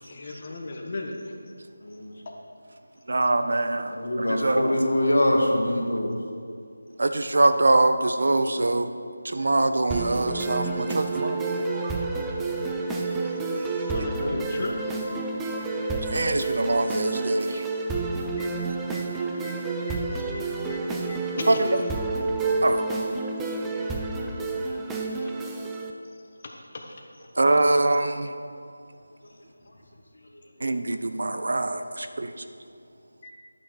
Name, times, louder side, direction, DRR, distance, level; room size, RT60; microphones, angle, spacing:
voice 1, 0.0-1.2 13.2-13.3 13.8-14.7 18.4-18.5 18.9-19.0 19.4-19.6 19.9-20.0 20.3-20.4 20.7-20.8 21.1-21.6 25.2-25.3 26.4-26.9 33.2-33.3, left 3 dB, 35° left, 1 dB, 1.0 m, -37 dB
voice 2, 3.1-4.8 7.0-8.9 9.2-11.4 11.7-11.9 16.1-17.6 21.5-21.7 22.6-22.8 27.4-28.3 30.6-32.4, right 2 dB, 60° right, 8 dB, 0.6 m, -24 dB
voice 3, 3.9-6.1 13.9-14.4, left 1 dB, 80° left, 0 dB, 1.8 m, -24 dB
sound 1, 9.9-25.9, right 3 dB, 5° right, 0.4 m, -29 dB
11.0 x 6.4 x 4.6 m, 2.4 s
figure-of-eight pair, 170°, 0 cm